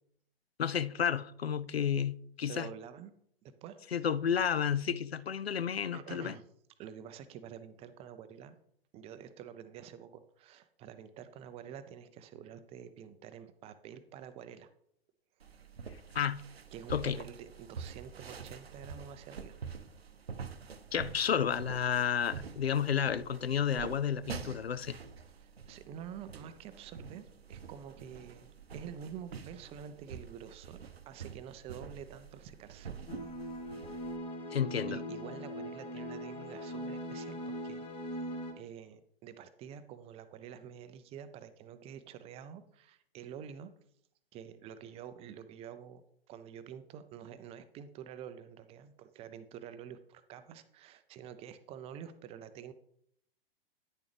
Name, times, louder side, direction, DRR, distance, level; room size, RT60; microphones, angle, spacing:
voice 1, 0.6-2.7 3.9-6.3 16.1-16.4 16.9-17.2 20.9-25.0 34.5-35.0, left 8 dB, 90° left, 0.5 m, -31 dB
voice 2, 2.5-3.1 3.4-3.8 5.9-6.4 6.8-8.6 8.9-14.7 16.7-19.6 25.3-32.9 33.4-33.6 34.9-37.8 38.1-38.2 38.6-43.7 44.3-46.0 46.3-52.7, right 8 dB, 20° right, 0.5 m, -48 dB
sound 1, 15.4-34.2, right 6 dB, 85° right, 0.7 m, -47 dB
sound 2, 33.1-38.5, equal, 20° left, 1.1 m, -40 dB
10.0 x 6.9 x 3.3 m
figure-of-eight pair, 110°, 30 cm